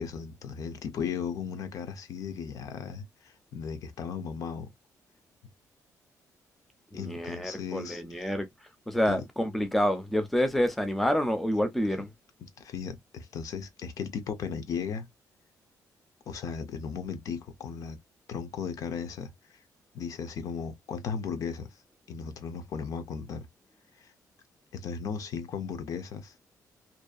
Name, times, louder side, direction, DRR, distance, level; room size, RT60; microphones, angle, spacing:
voice 1, 0.0-4.7 6.9-8.3 9.1-9.2 12.4-15.1 16.3-18.0 18.3-19.6 19.9-21.8 22.1-23.5 24.0-24.1 24.7-26.3, left 6 dB, 60° left, 0.5 m, -36 dB
voice 2, 6.9-8.5 8.9-12.1, equal, ahead, 0.4 m, -28 dB
2.6 x 2.3 x 2.3 m
cardioid pair, 165°, 7 cm